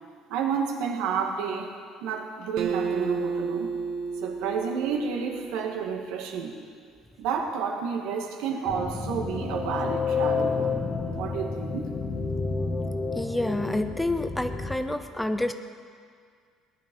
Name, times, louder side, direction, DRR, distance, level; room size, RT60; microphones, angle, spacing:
voice 1, 0.3-1.7 2.0-3.7 4.2-6.6 7.2-10.8 11.1-11.9, right 6 dB, 75° right, 3 dB, 1.9 m, -30 dB
Acoustic guitar, 2.6-6.0, right 5 dB, 60° right, 1.0 m, -31 dB
sound 1, 8.6-14.7, left 4 dB, 20° left, 1.0 m, -30 dB
voice 2, 13.2-15.5, left 1 dB, 5° left, 9 dB, 0.5 m, -28 dB
18.5 x 11.0 x 5.4 m, 2.1 s
cardioid pair, 175°, 0 cm